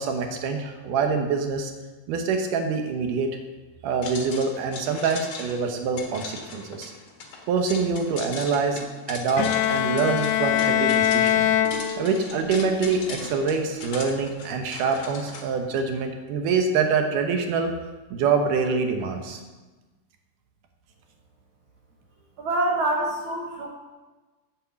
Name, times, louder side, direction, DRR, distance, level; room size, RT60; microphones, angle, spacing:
voice 1, 0.0-1.7 2.1-3.3 3.8-6.9 7.5-8.8 9.1-11.5 12.0-17.8 18.1-19.4, right 5 dB, 70° right, 5 dB, 2.2 m, -25 dB
sound 1, 4.0-15.4, left 4 dB, 60° left, 1.4 m, -39 dB
Bowed string instrument, 9.4-12.5, left 11 dB, 85° left, 2.4 m, -23 dB
voice 2, 22.4-23.7, right 1 dB, 90° right, -1 dB, 1.1 m, -25 dB
8.5 x 8.3 x 6.9 m, 1.2 s
omnidirectional pair, 4.6 m